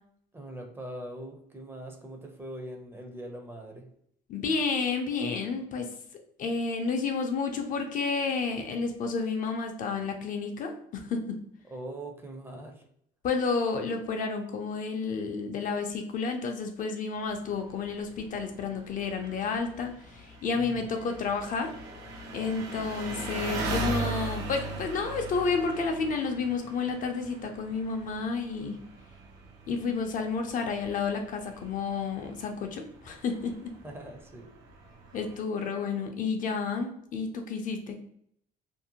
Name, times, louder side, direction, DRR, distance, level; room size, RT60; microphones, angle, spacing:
voice 1, 0.3-3.9 11.6-12.8 20.5-20.9 33.8-34.5, right 1 dB, 15° right, 3 dB, 0.5 m, -42 dB
voice 2, 4.3-5.9 6.4-11.4 13.2-21.7 22.3-28.8 29.7-33.7 35.1-38.0, left 4 dB, 50° left, 4 dB, 0.4 m, -31 dB
Engine, 17.3-35.4, right 2 dB, 85° right, 0.7 m, -40 dB
2.6 x 2.0 x 2.8 m, 0.68 s
cardioid pair, 110°, 17 cm